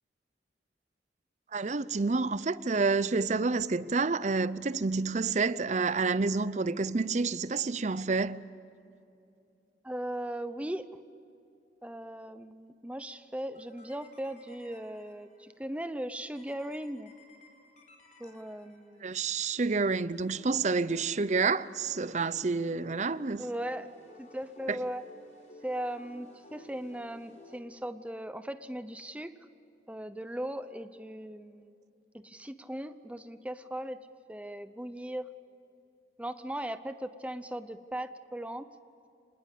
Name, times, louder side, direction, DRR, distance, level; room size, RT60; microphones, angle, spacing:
voice 1, 1.5-8.4 19.0-23.5 24.7-24.8, right 4 dB, 40° right, 0.6 m, -29 dB
voice 2, 9.8-10.9 11.8-17.1 18.2-19.1 23.4-23.9 24.2-25.0 25.6-29.4 29.9-31.8 32.1-34.0 34.3-35.3 36.2-38.7, right 1 dB, 5° right, 0.7 m, -38 dB
sound 1, 13.5-15.5 16.3-19.2 20.1-27.6, left 2 dB, 45° left, 4.2 m, -56 dB
26.0 x 20.0 x 8.3 m
head